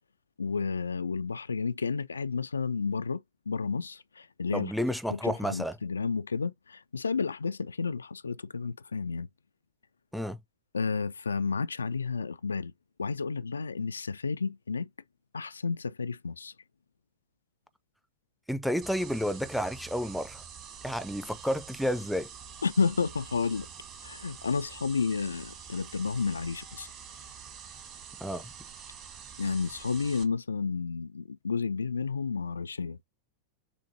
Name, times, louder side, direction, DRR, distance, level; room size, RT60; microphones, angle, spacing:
voice 1, 0.4-4.7 5.1-9.3 10.7-12.7 13.0-14.9 15.3-16.5 22.6-23.7 24.0-26.9 29.4-33.0, left 5 dB, 75° left, 0.3 m, -31 dB
voice 2, 4.5-5.8 10.1-10.4 18.5-20.4 20.8-22.3 28.2-28.5, equal, ahead, 0.6 m, -31 dB
sound 1, 18.8-30.2, right 7 dB, 35° right, 1.6 m, -46 dB
6.9 x 2.7 x 2.7 m
figure-of-eight pair, 90°, 0 cm